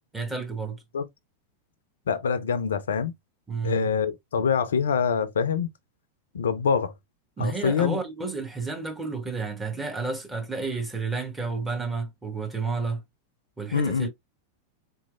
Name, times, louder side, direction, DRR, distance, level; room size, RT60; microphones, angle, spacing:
voice 1, 0.1-0.8 3.5-3.9 7.4-13.0 13.6-14.1, right 4 dB, 10° right, 1.0 m, -31 dB
voice 2, 2.1-3.1 3.6-5.7 6.3-6.9 7.4-8.0 13.7-14.1, left 6 dB, 65° left, 0.4 m, -25 dB
3.8 x 3.0 x 2.3 m
figure-of-eight pair, 90°, 0 cm